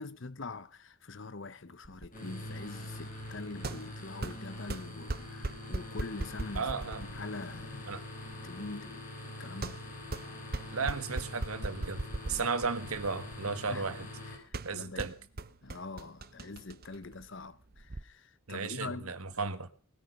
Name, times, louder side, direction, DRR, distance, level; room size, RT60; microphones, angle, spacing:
voice 1, 0.0-6.7 7.0-8.0 8.4-9.8 13.7-13.9 14.3-15.1 15.6-19.1, left 3 dB, 55° left, 0.8 m, -44 dB
sound 1, 1.8-18.0, right 2 dB, 45° right, 0.8 m, -41 dB
sound 2, 2.1-14.4, left 1 dB, 35° left, 6.7 m, -44 dB
voice 2, 6.5-7.0 7.9-8.0 10.7-14.1 14.6-15.1 18.5-19.7, right 4 dB, 80° right, 1.5 m, -35 dB
19.5 x 10.0 x 6.5 m
head